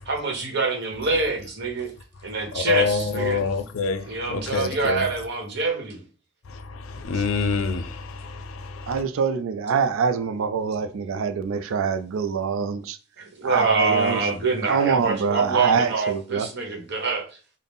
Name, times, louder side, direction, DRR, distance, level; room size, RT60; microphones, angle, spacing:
voice 1, 0.1-1.9 2.2-3.4 4.0-6.0 7.1-7.2 13.2-17.2, right 4 dB, 55° right, 1.1 m, -25 dB
voice 2, 2.5-5.1 6.5-9.0, left 5 dB, 85° left, 0.5 m, -27 dB
voice 3, 8.9-13.0 13.4-14.2 14.7-16.5, right 6 dB, 85° right, 0.4 m, -25 dB
3.9 x 2.1 x 3.5 m
head